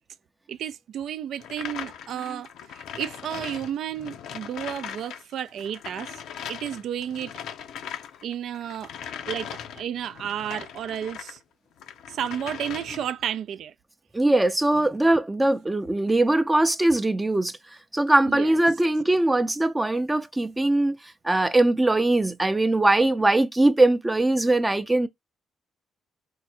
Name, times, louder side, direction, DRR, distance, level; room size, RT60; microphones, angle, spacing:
voice 1, 0.5-6.2 6.5-7.3 8.2-8.9 9.3-11.4 12.1-13.7 18.3-18.6, right 9 dB, 70° right, 0.3 m, -32 dB
sound 1, 1.4-11.4 11.8-13.2, left 8 dB, 80° left, 0.6 m, -39 dB
voice 2, 14.1-17.5 17.9-21.0 21.2-25.1, right 2 dB, 15° right, 0.5 m, -21 dB
4.7 x 2.1 x 4.3 m
cardioid pair, 90°, 0 cm